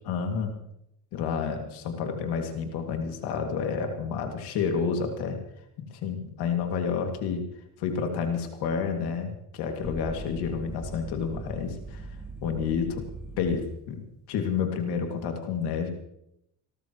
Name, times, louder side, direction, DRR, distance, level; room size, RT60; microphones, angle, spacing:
voice 1, 0.1-0.5 1.1-5.4 5.8-7.4 7.8-12.1 12.4-13.1 13.4-15.9, left 6 dB, 85° left, 4 dB, 2.4 m, -30 dB
sound 1, 9.8-13.9, right 2 dB, ahead, 3.0 m, -40 dB
26.5 x 13.0 x 3.1 m, 0.78 s
cardioid pair, 95°, 38 cm